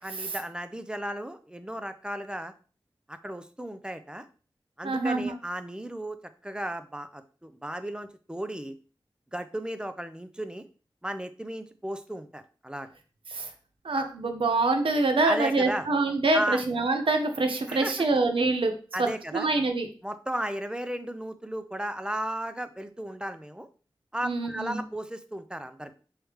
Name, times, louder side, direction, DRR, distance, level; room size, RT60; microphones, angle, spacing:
voice 1, 0.0-2.5 3.1-4.2 4.8-6.2 6.4-8.7 9.3-10.7 11.0-12.9 15.3-15.9 16.3-16.6 17.7-17.9 18.9-19.5 20.0-23.7 24.1-25.9, right 1 dB, 10° right, 10 dB, 0.5 m, -35 dB
voice 2, 4.8-5.3 13.3-13.5 13.8-18.7 19.0-19.1 19.3-19.9 24.2-24.8, right 3 dB, 85° right, 5 dB, 0.8 m, -25 dB
4.9 x 3.2 x 3.1 m, 0.38 s
wide cardioid pair, 70°, 9 cm